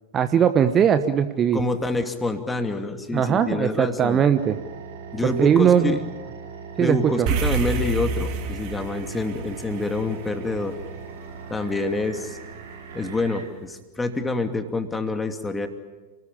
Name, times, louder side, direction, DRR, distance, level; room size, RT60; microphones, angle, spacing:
voice 1, 0.1-1.6 3.1-4.6 5.2-6.0 6.8-7.3, right 8 dB, 25° right, 10 dB, 1.1 m, -19 dB
voice 2, 1.5-4.2 5.1-6.0 6.8-10.8 11.5-12.4 12.9-15.7, left 2 dB, 10° left, 6 dB, 2.5 m, -27 dB
sound 1, 4.3-13.5, right 5 dB, 60° right, 5.9 m, -40 dB
sound 2, 7.3-11.8, right 4 dB, 45° right, 2.9 m, -29 dB
30.0 x 19.5 x 8.7 m, 1.3 s
figure-of-eight pair, 90°, 0 cm